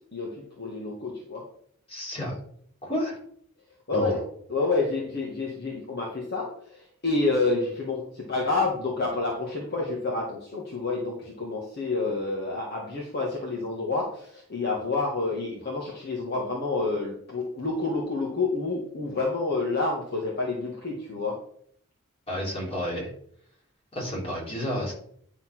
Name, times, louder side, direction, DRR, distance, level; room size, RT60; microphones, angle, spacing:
voice 1, 0.1-1.5 3.9-4.2 4.5-21.4 24.0-24.1, left 3 dB, 45° left, -3 dB, 1.8 m, -29 dB
voice 2, 1.9-2.4 2.8-3.2 3.9-4.1 22.3-23.1 23.9-24.9, equal, 25° left, -4 dB, 3.6 m, -30 dB
10.5 x 4.2 x 6.1 m, 0.63 s
head